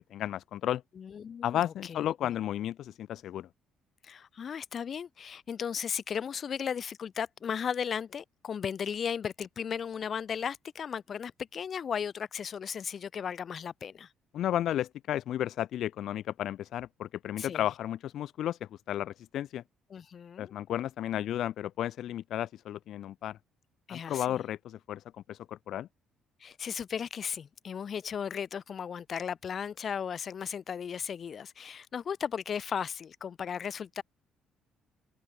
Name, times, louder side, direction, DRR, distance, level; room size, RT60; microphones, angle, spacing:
voice 1, 0.1-0.8 1.4-3.5 14.3-18.6 18.9-19.6 20.4-23.4 23.9-25.0 25.3-25.9, left 12 dB, 65° left, 0.4 m, -33 dB
voice 2, 0.9-2.1 4.0-14.1 17.4-17.6 19.9-20.6 23.9-24.4 26.4-34.0, left 7 dB, 40° left, 1.2 m, -36 dB
cardioid pair, 120°, 0 cm